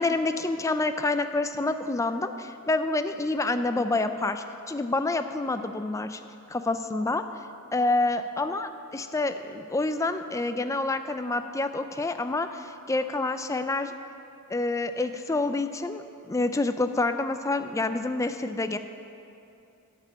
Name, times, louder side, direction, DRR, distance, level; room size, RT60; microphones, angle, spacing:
voice 1, 0.0-6.2 6.5-7.3 7.7-13.9 14.5-18.8, left 2 dB, 15° left, 9 dB, 0.4 m, -28 dB
11.5 x 5.6 x 8.4 m, 2.7 s
head